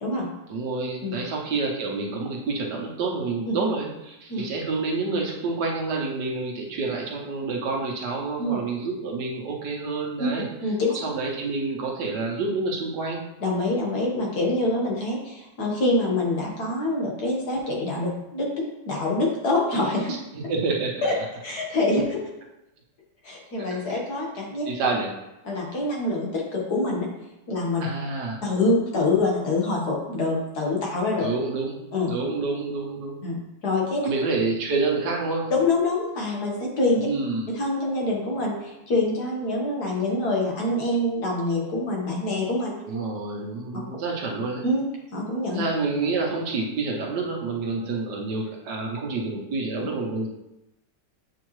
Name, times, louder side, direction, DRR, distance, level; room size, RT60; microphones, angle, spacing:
voice 1, 0.5-10.5 10.9-13.2 20.3-21.1 23.6-23.8 24.7-25.1 27.8-28.4 31.2-31.8 32.1-33.2 34.0-35.5 37.0-37.5 42.8-44.6 45.5-50.3, right 3 dB, 65° right, 0 dB, 1.5 m, -28 dB
voice 2, 10.6-11.0 13.4-20.1 20.4-20.5 21.0-21.1 21.4-22.2 23.2-24.7 25.4-27.1 27.5-27.9 28.4-31.3 31.9-32.1 33.2-33.4 33.6-34.1 35.5-37.1 37.5-42.8 44.6-44.9 45.1-45.6, left 2 dB, 60° left, -2 dB, 1.9 m, -25 dB
7.6 x 5.5 x 3.1 m, 0.92 s
omnidirectional pair, 2.0 m